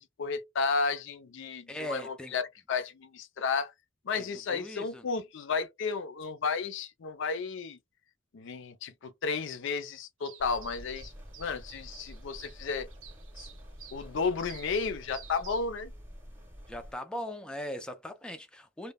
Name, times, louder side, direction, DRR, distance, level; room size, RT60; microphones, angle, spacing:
voice 1, 0.0-3.7 4.0-7.8 8.3-11.1 11.4-12.9 13.4-13.5 13.9-15.9, left 5 dB, 65° left, 0.4 m, -33 dB
voice 2, 1.7-2.3 4.1-5.0 16.7-18.9, left 1 dB, 5° left, 0.3 m, -39 dB
sound 1, 10.2-15.7, right 9 dB, 75° right, 0.6 m, -52 dB
sound 2, 10.4-16.9, equal, 10° right, 0.8 m, -48 dB
2.1 x 2.0 x 3.4 m
head